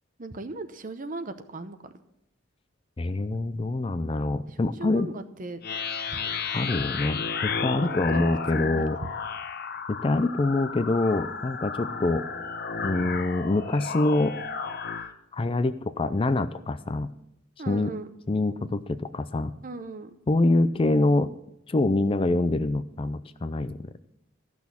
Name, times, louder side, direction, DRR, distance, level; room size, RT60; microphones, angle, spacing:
voice 1, 0.2-1.9 4.5-5.6 7.8-9.1 17.6-18.1 19.6-20.1, right 2 dB, 40° right, 10 dB, 0.8 m, -38 dB
voice 2, 3.0-5.1 6.5-9.0 9.9-12.3 12.8-14.4 15.3-17.1 17.7-17.9 18.3-19.5 20.3-21.3 21.7-23.9, left 2 dB, 25° left, 12 dB, 0.4 m, -25 dB
sound 1, 5.6-15.1, left 5 dB, 50° left, 0.9 m, -33 dB
13.5 x 6.2 x 7.1 m, 0.78 s
head